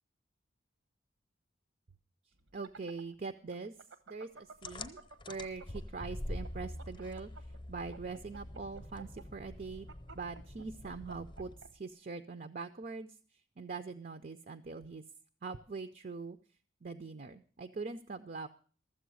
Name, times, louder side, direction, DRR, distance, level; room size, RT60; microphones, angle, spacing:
sound 1, 2.4-6.0 6.3-11.7, right 4 dB, 75° right, 1.0 m, -51 dB
voice 1, 2.5-3.7 4.1-5.0 5.3-7.3 7.7-9.9 10.1-13.1 13.6-15.0 15.4-16.4 16.8-18.5, right 4 dB, 45° right, 9 dB, 0.5 m, -43 dB
sound 2, 4.6-11.8, left 1 dB, 25° left, 0.8 m, -45 dB
13.5 x 7.6 x 6.2 m, 0.42 s
head